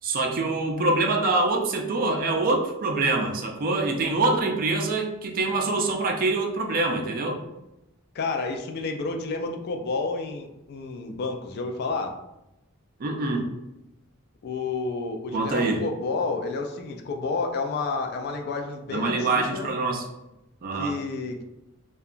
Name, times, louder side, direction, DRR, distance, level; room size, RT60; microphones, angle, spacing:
voice 1, 0.0-7.4 13.0-13.5 15.3-15.8 18.9-20.1 20.6-20.9, right 2 dB, 45° right, 2 dB, 0.4 m, -25 dB
voice 2, 8.1-12.1 14.4-19.7 20.8-21.4, left 3 dB, 50° left, 4 dB, 0.3 m, -30 dB
2.8 x 2.2 x 2.4 m, 0.92 s
head